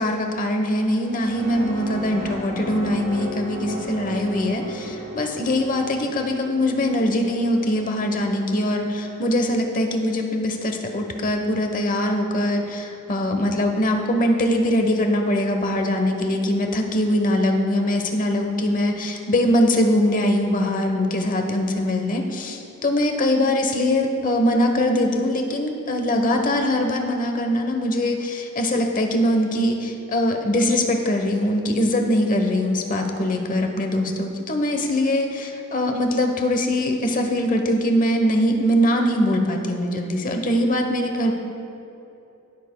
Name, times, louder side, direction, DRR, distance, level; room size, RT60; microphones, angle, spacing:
voice 1, 0.0-41.3, left 1 dB, 40° left, 4 dB, 0.9 m, -22 dB
sound 1, 0.8-9.5, equal, 45° right, 2.0 m, -35 dB
19.5 x 7.2 x 2.2 m, 2.8 s
head